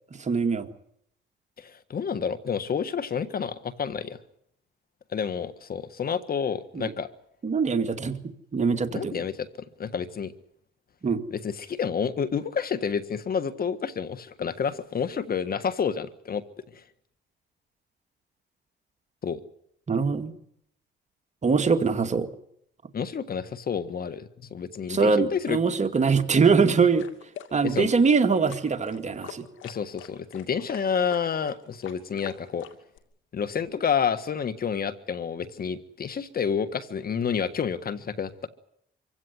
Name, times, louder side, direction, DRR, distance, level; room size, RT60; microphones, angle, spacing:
voice 1, 0.2-0.7 6.7-6.9 7.4-8.2 8.5-9.1 11.0-11.2 19.9-20.3 21.4-22.3 24.9-27.1 27.5-29.4, right 5 dB, 35° right, 7 dB, 2.2 m, -23 dB
voice 2, 1.6-4.2 5.1-7.1 8.9-9.5 9.8-10.3 11.3-16.4 19.2-19.4 22.9-25.6 27.6-27.9 29.6-32.7 33.3-38.5, left 7 dB, 50° left, 13 dB, 1.6 m, -29 dB
sound 1, 27.0-33.0, left 10 dB, 80° left, 2.6 m, -45 dB
25.0 x 16.5 x 9.7 m, 0.71 s
cardioid pair, 90°, 20 cm